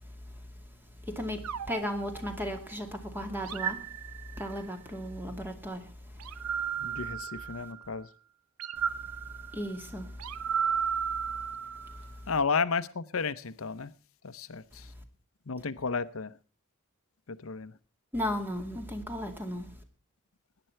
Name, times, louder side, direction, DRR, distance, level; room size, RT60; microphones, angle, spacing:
voice 1, 1.0-3.9 4.3-6.8 9.5-10.5 11.1-11.2 11.9-12.1 18.1-19.7, equal, 10° right, 2.2 m, -36 dB
sound 1, 1.4-2.8 3.4-4.7 6.2-7.9 8.6-12.1, right 7 dB, 85° right, 0.7 m, -34 dB
voice 2, 6.8-8.1 12.3-13.9 14.2-14.9 15.5-16.3 17.3-17.8, left 5 dB, 70° left, 0.8 m, -32 dB
18.0 x 10.0 x 4.5 m
head